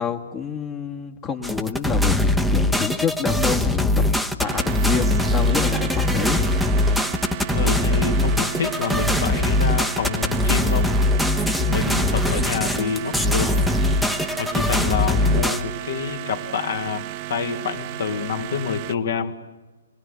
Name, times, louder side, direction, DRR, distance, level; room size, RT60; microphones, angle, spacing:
voice 1, 0.0-3.9 4.4-6.4, left 7 dB, 20° left, 0 dB, 1.6 m, -27 dB
sound 1, 1.4-15.6, left 1 dB, ahead, 1.0 m, -21 dB
sound 2, 4.4-19.0, right 15 dB, 30° right, 1.0 m, -34 dB
voice 2, 7.5-10.9 11.7-13.5 14.4-19.3, left 6 dB, 50° left, 7 dB, 2.2 m, -27 dB
26.5 x 21.0 x 8.1 m, 1.2 s
figure-of-eight pair, 120°, 0 cm